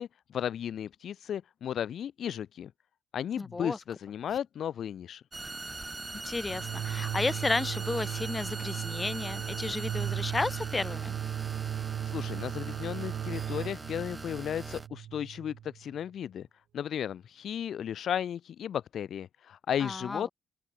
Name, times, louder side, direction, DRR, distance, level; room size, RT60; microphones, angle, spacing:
voice 1, 0.0-2.7 3.1-5.2 12.0-16.5 16.7-20.3, left 9 dB, 65° left, 0.6 m, -34 dB
voice 2, 3.4-3.8 6.2-11.1 19.8-20.2, left 3 dB, 20° left, 4.5 m, -33 dB
sound 1, 5.3-14.9, right 2 dB, 20° right, 1.4 m, -41 dB
sound 2, 6.5-16.0, right 10 dB, 70° right, 1.2 m, -36 dB
cardioid pair, 90°, 0 cm